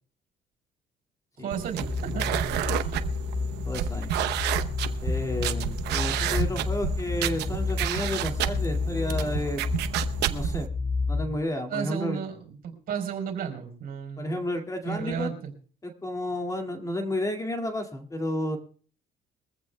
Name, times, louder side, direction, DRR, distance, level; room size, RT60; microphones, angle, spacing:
voice 1, 1.4-2.3 2.7-2.9 11.7-14.4 14.8-15.5, right 7 dB, 60° right, 5 dB, 4.1 m, -33 dB
sound 1, 1.5-10.7, right 12 dB, 80° right, 0.9 m, -31 dB
sound 2, 1.8-11.4, left 4 dB, 50° left, 3.1 m, -30 dB
voice 2, 3.6-4.1 5.0-9.6 10.3-10.7 11.1-12.2 14.2-15.3 15.8-18.6, left 1 dB, 20° left, 4 dB, 2.3 m, -31 dB
23.0 x 15.0 x 2.3 m, 0.42 s
cardioid pair, 110°, 17 cm